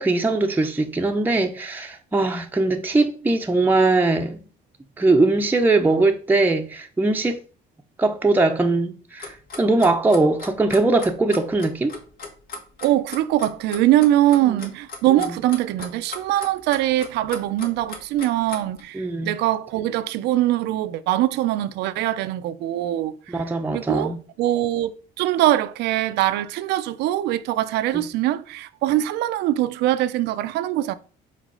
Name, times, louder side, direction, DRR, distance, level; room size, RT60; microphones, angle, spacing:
voice 1, 0.0-4.4 5.0-7.4 8.0-11.9 14.5-14.6 15.1-15.2 18.9-19.3 23.3-24.2 27.9-28.1, right 2 dB, 10° right, 0.7 m, -21 dB
Clock, 9.2-18.8, left 4 dB, 60° left, 2.1 m, -37 dB
voice 2, 12.8-24.9 25.2-30.9, right 14 dB, 85° right, 0.6 m, -22 dB
5.1 x 4.2 x 5.5 m
cardioid pair, 110°, 17 cm